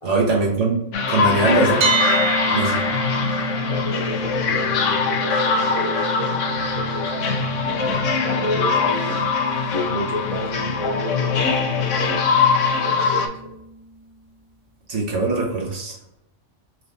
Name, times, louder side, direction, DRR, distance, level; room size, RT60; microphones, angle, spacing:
voice 1, 0.0-0.8 1.1-1.9 2.5-2.8 14.9-16.0, right 3 dB, 75° right, -2 dB, 1.6 m, -21 dB
sound 1, 0.9-13.3, left 5 dB, 85° left, 1.0 m, -22 dB
sound 2, 1.8-13.7, right 3 dB, 45° right, 0.8 m, -30 dB
voice 2, 3.5-7.2 7.6-9.3 9.7-12.2 12.7-13.5, equal, 30° left, -2 dB, 0.8 m, -31 dB
4.8 x 3.2 x 2.7 m, 0.81 s
omnidirectional pair, 1.2 m